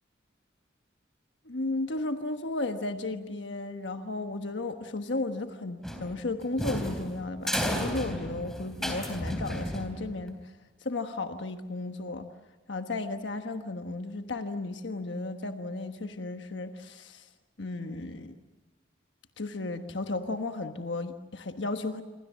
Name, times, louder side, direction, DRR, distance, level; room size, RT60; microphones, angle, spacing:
voice 1, 1.4-10.5 10.8-12.3 12.7-17.3 17.6-18.4 19.4-22.0, left 2 dB, 80° left, 6 dB, 1.2 m, -34 dB
sound 1, 5.8-10.3, equal, 5° left, 3.6 m, -33 dB
27.5 x 24.0 x 7.4 m, 1.2 s
head